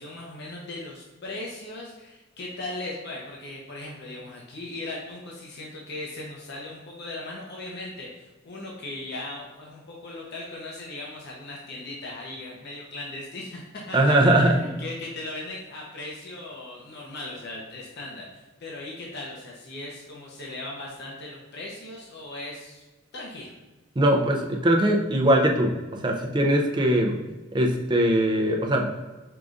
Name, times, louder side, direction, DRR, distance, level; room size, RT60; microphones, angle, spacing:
voice 1, 0.0-14.0 14.2-22.8 23.1-23.5, left 2 dB, 60° left, -3 dB, 0.8 m, -38 dB
voice 2, 13.9-14.6 24.0-27.2 27.5-28.9, right 1 dB, 25° right, 1 dB, 0.5 m, -21 dB
4.8 x 3.8 x 2.4 m, 1.2 s
head